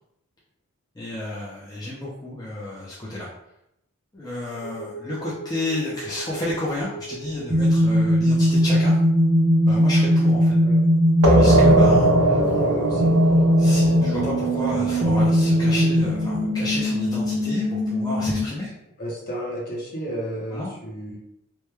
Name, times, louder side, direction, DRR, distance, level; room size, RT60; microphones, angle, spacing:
voice 1, 1.0-3.3 4.1-9.0 9.7-10.5 11.2-12.1 13.6-18.7 20.5-20.7, left 1 dB, 15° left, -7 dB, 0.5 m, -31 dB
sound 1, 4.6-18.4, equal, 20° right, 0.7 m, -21 dB
sound 2, 11.2-16.6, right 1 dB, 75° right, 0.7 m, -21 dB
voice 2, 12.3-13.1 19.0-21.2, equal, 40° left, -3 dB, 0.8 m, -33 dB
3.1 x 2.2 x 3.2 m, 0.79 s
head